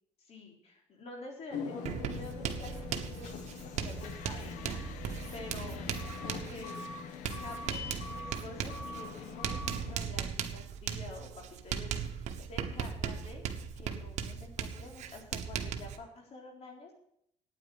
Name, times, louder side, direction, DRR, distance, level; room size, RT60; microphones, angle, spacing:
voice 1, 0.3-5.0 5.3-5.9 6.2-6.9 7.4-13.5 13.8-16.9, left 2 dB, 55° left, 1 dB, 3.9 m, -48 dB
sound 1, 1.5-10.0, left 5 dB, 85° left, 1.2 m, -42 dB
Writing, 1.8-16.0, right 8 dB, 70° right, 1.2 m, -38 dB
9.1 x 8.9 x 7.7 m, 0.70 s
cardioid pair, 100°, 12 cm